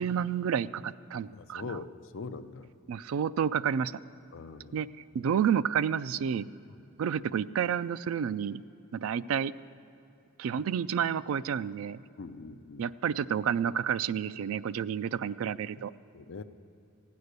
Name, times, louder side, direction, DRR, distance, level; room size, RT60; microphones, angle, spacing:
voice 1, 0.0-1.8 2.9-4.0 4.7-4.9 5.1-6.5 7.0-8.6 8.9-9.5 10.4-12.0 12.8-15.9, right 8 dB, 75° right, 16 dB, 0.3 m, -30 dB
voice 2, 1.3-2.7 4.3-4.9 12.2-12.9 15.8-15.9 16.1-16.4, left 4 dB, 65° left, 9 dB, 0.5 m, -42 dB
15.5 x 9.5 x 6.6 m, 2.8 s
head